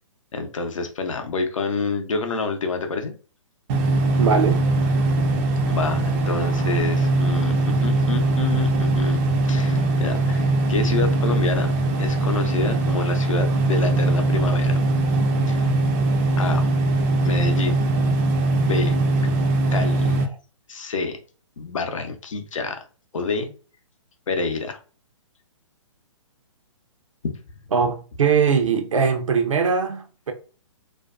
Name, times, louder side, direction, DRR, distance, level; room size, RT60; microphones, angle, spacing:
voice 1, 0.3-3.1 5.7-11.7 12.0-14.7 15.5-15.7 16.4-16.6 17.2-17.9 18.5-19.0 19.7-20.2 20.7-21.2 21.6-22.8 23.1-23.5 24.3-24.8, left 4 dB, 75° left, 0.6 m, -28 dB
sound 1, 3.7-20.3, right 2 dB, 25° right, 0.3 m, -21 dB
voice 2, 4.2-4.6 27.7-30.3, right 6 dB, 75° right, 0.6 m, -21 dB
2.5 x 2.2 x 2.4 m
hypercardioid pair, 135°, 17 cm